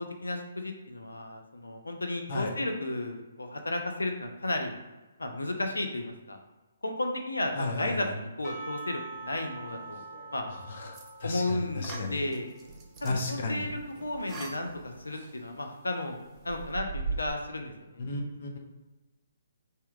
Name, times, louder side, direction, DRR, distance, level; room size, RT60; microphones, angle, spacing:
voice 1, 0.0-4.8 5.2-6.4 6.8-10.0 10.3-10.5 11.2-12.5 13.0-16.2 16.4-18.0, left 1 dB, 85° left, 4 dB, 0.5 m, -33 dB
voice 2, 7.6-8.1 10.7-10.9 11.2-12.2 13.0-13.6 18.0-18.6, left 2 dB, 50° left, 1 dB, 0.7 m, -33 dB
Percussion / Church bell, 8.4-12.9, right 3 dB, ahead, 0.8 m, -45 dB
sound 1, 9.2-10.7 10.9-11.3 11.6-11.8 12.2-17.3, right 4 dB, 45° right, 0.7 m, -42 dB
sound 2, 10.9-11.4 11.8-13.3 14.0-15.2, right 3 dB, 15° right, 0.4 m, -46 dB
3.4 x 2.8 x 2.3 m, 1.1 s
figure-of-eight pair, 135°, 0 cm